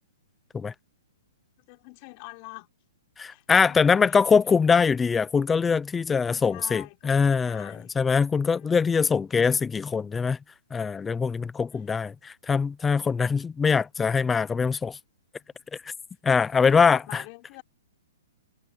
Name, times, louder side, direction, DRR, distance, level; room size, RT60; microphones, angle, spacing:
voice 1, 1.7-2.7 3.3-4.3 6.1-7.9 8.4-9.0 16.5-17.6, left 27 dB, 30° left, 6.2 m, -46 dB
voice 2, 3.2-10.4 10.7-15.0 16.2-17.2, left 5 dB, 10° left, 0.6 m, -23 dB
hypercardioid pair, 165°, 0 cm